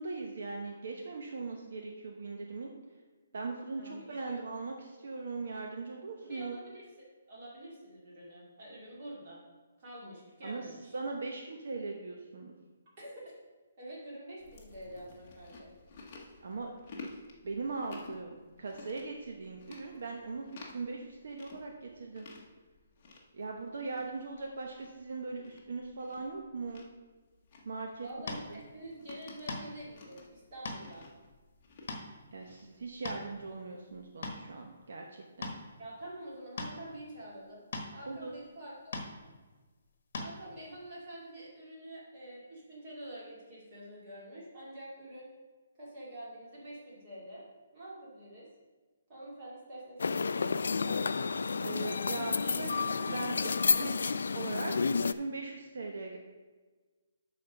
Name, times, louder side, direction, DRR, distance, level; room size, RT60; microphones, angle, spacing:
voice 1, 0.0-2.7 3.3-6.6 10.4-12.5 16.4-16.7 17.4-20.4 20.7-22.3 23.3-26.9 27.6-28.1 28.5-28.6 32.3-35.5 38.1-38.3 51.6-56.2, right 3 dB, 55° right, 1 dB, 0.9 m, -40 dB
voice 2, 3.7-4.4 6.2-9.4 9.8-10.9 13.0-13.1 13.8-15.7 28.0-31.1 35.8-37.6 37.9-39.0 40.2-45.3 45.8-47.4 47.7-48.5 49.1-51.3, right 1 dB, 25° right, -6 dB, 2.5 m, -47 dB
Chewing mastication, 14.4-33.3, left 3 dB, 25° left, 1.0 m, -53 dB
sound 1, 28.3-28.4 29.5-29.8 30.4-30.8 31.3-31.4 31.9-32.1 32.8-33.4 33.9-34.4 35.4-35.6 36.6-36.8 37.7-37.9 38.9-39.1 40.1-40.3, left 3 dB, 45° left, 1.2 m, -38 dB
sound 2, 50.0-55.1, left 4 dB, 80° left, 0.3 m, -30 dB
11.5 x 4.3 x 5.2 m, 1.3 s
hypercardioid pair, 180°, 0 cm